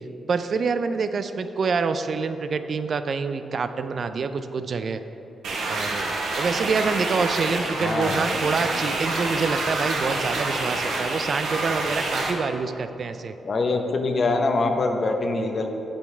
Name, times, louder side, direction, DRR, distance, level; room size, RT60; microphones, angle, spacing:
voice 1, 0.3-5.0 5.7-13.3, right 5 dB, 60° right, 10 dB, 0.3 m, -26 dB
sound 1, 5.4-12.3, right 2 dB, 80° right, 0.8 m, -27 dB
voice 2, 7.8-8.4 13.4-15.7, left 3 dB, 55° left, 4 dB, 0.7 m, -24 dB
8.3 x 3.9 x 4.4 m, 3.0 s
cardioid pair, 70°, 0 cm